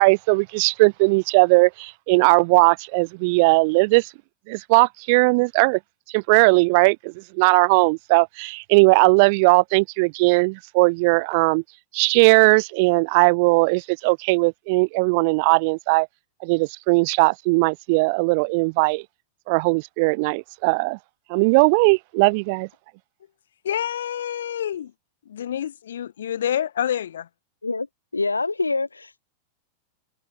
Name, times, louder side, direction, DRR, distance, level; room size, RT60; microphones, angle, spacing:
voice 1, 0.0-4.1 4.5-5.8 6.1-11.6 11.9-16.1 16.4-19.0 19.5-21.0 21.3-22.7, right 29 dB, 45° right, 1.1 m, -18 dB
voice 2, 23.6-24.9 25.2-27.3, left 10 dB, 65° left, 4.8 m, -27 dB
voice 3, 28.1-29.3, left 3 dB, 80° left, 0.6 m, -25 dB
figure-of-eight pair, 90°, 0 cm